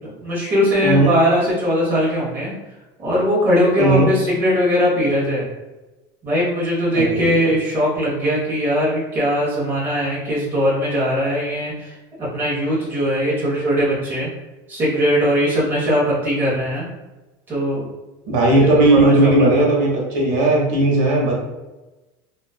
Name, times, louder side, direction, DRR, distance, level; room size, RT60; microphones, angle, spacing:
voice 1, 0.0-2.5 3.0-5.5 6.2-14.3 14.7-16.9 17.5-17.8 18.9-19.6, equal, 20° right, -7 dB, 0.7 m, -20 dB
voice 2, 0.8-1.1 3.8-4.1 6.9-7.4 18.3-21.4, right 2 dB, 75° right, -2 dB, 0.8 m, -16 dB
2.5 x 2.2 x 2.3 m, 1.1 s
cardioid pair, 180°, 11 cm